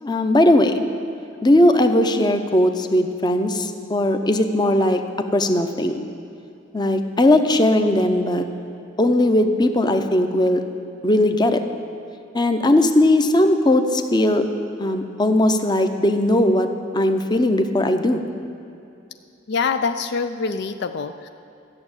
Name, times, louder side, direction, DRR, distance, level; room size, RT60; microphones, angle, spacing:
voice 1, 0.0-0.8 1.4-5.0 5.3-6.0 6.7-8.5 9.0-10.6 11.0-11.6 12.3-14.5 14.8-16.7 16.9-18.2, left 1 dB, 25° left, 7 dB, 0.7 m, -18 dB
voice 2, 19.5-21.3, left 5 dB, 65° left, 8 dB, 0.4 m, -25 dB
13.5 x 7.1 x 8.8 m, 2.6 s
head